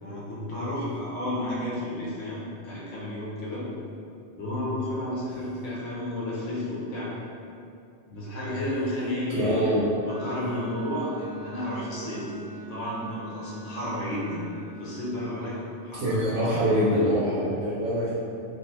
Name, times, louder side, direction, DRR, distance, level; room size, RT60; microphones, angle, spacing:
voice 1, 0.0-3.7 4.4-7.1 8.1-9.8 10.0-12.3 12.6-14.5 14.8-16.9, left 1 dB, 90° left, -6 dB, 1.2 m, -32 dB
voice 2, 9.3-9.8 16.0-18.1, equal, 80° right, -8 dB, 1.0 m, -24 dB
Wind instrument woodwind instrument, 10.0-15.2, right 3 dB, 25° left, 0.6 m, -43 dB
3.5 x 2.4 x 2.8 m, 2.5 s
omnidirectional pair, 1.3 m